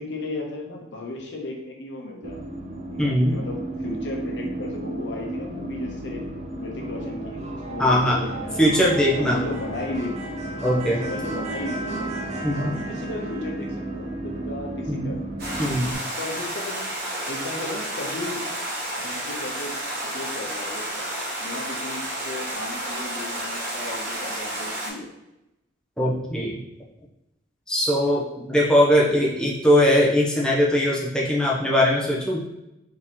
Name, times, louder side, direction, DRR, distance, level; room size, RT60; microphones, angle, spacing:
voice 1, 0.0-2.4 2.9-6.2 6.6-8.8 9.2-10.1 10.6-12.1 12.5-15.3 16.2-16.9 17.3-18.5 19.0-21.1 21.4-25.1, left 2 dB, 70° left, 1 dB, 0.8 m, -35 dB
sound 1, 2.2-15.9, right 2 dB, 40° right, 0.7 m, -33 dB
voice 2, 3.0-3.3 7.8-8.2 8.6-9.4 10.6-11.0 12.4-12.7 14.9-15.1 15.6-15.9 26.0-26.6 27.7-32.4, equal, 5° left, -5 dB, 0.7 m, -20 dB
Stream, 15.4-24.9, right 1 dB, 55° right, 1.2 m, -31 dB
3.6 x 3.0 x 4.3 m, 0.91 s
head